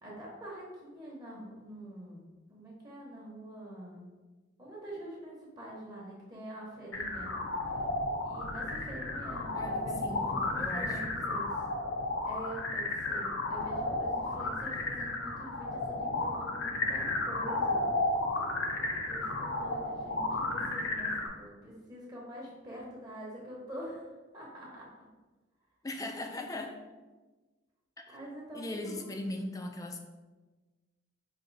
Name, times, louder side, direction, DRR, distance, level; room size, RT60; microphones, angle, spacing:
voice 1, 0.0-2.2 2.5-4.1 4.6-7.3 7.7-7.8 8.2-9.8 10.1-11.6 12.2-17.8 19.1-24.1 24.3-24.9 28.1-29.2, right 1 dB, 20° right, -4 dB, 0.9 m, -45 dB
sound 1, 6.9-21.3, left 2 dB, 85° left, 0.7 m, -33 dB
voice 2, 9.5-11.0 25.8-26.8 28.0-28.2 28.5-30.0, left 1 dB, 20° left, 4 dB, 0.4 m, -39 dB
4.9 x 2.6 x 3.9 m, 1.3 s
head